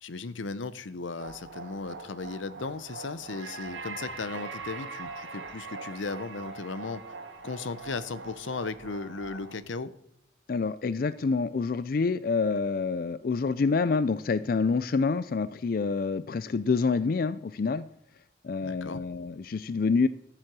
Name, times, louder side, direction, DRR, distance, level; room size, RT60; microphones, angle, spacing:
voice 1, 0.0-7.0 7.4-9.9 18.6-19.0, left 4 dB, 80° left, 15 dB, 0.7 m, -36 dB
sound 1, 1.2-9.6, right 3 dB, 75° right, 1.6 m, -42 dB
voice 2, 10.5-17.9 18.4-20.1, left 4 dB, 50° left, 15 dB, 0.4 m, -27 dB
14.0 x 7.6 x 6.1 m, 0.77 s
head